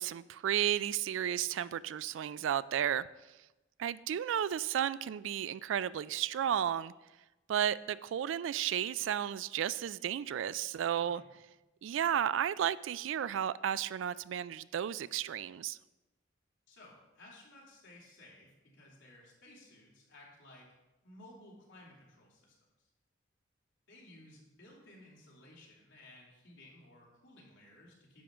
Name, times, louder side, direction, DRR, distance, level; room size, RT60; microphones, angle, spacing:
voice 1, 0.0-3.1 3.8-6.9 7.5-11.2 11.8-15.8, right 10 dB, 80° right, 18 dB, 0.3 m, -33 dB
voice 2, 10.9-11.3 16.7-20.7 21.0-22.5 23.9-28.2, left 1 dB, 75° left, -4 dB, 2.9 m, -57 dB
10.5 x 3.7 x 6.9 m, 1.0 s
head